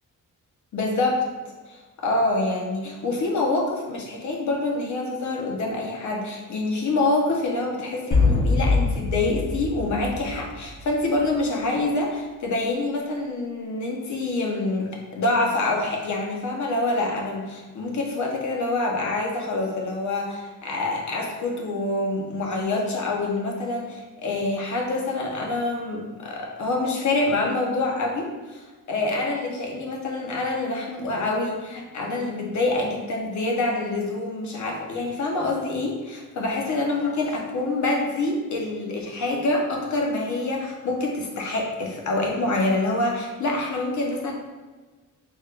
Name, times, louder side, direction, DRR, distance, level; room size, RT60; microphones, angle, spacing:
voice 1, 0.7-1.2 1.7-44.3, left 2 dB, 60° left, 0 dB, 0.7 m, -26 dB
sound 1, 8.1-11.0, left 3 dB, 25° left, 0.8 m, -23 dB
3.5 x 2.2 x 3.3 m, 1.3 s
wide cardioid pair, 130°, 33 cm